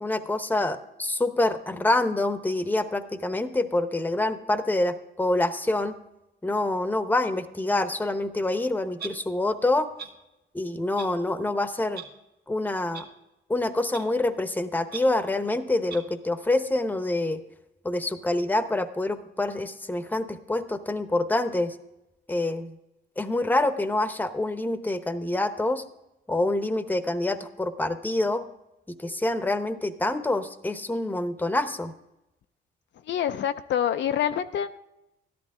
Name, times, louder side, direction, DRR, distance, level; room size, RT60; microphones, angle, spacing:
voice 1, 0.0-6.0 6.4-9.9 10.5-12.0 12.5-13.1 13.5-17.4 17.8-21.8 22.3-22.8 23.2-25.8 26.3-28.4 29.0-31.9, left 2 dB, 10° left, 10 dB, 0.9 m, -26 dB
Clock, 9.0-9.1 10.0-10.1 11.0-11.1 11.9-12.1 12.9-13.0 13.9-14.0 14.9-15.0 15.9-16.0, right 6 dB, 55° right, 1.7 m, -37 dB
voice 2, 33.0-34.8, left 9 dB, 65° left, 9 dB, 0.5 m, -26 dB
13.0 x 11.5 x 3.6 m, 0.92 s
cardioid pair, 90°, 20 cm